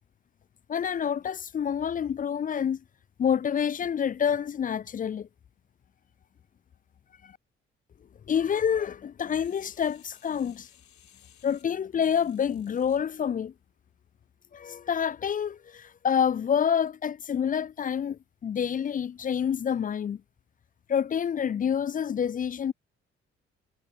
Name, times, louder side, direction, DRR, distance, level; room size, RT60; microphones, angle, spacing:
voice 1, 0.7-2.8 3.2-5.3 7.2-7.3 8.3-10.7 11.4-13.5 14.5-20.2 20.9-22.7, left 8 dB, 25° left, 0.4 m, -27 dB
sound 1, 9.3-13.0 13.6-13.7, left 11 dB, 60° left, 3.9 m, -59 dB
figure-of-eight pair, 40°, 32 cm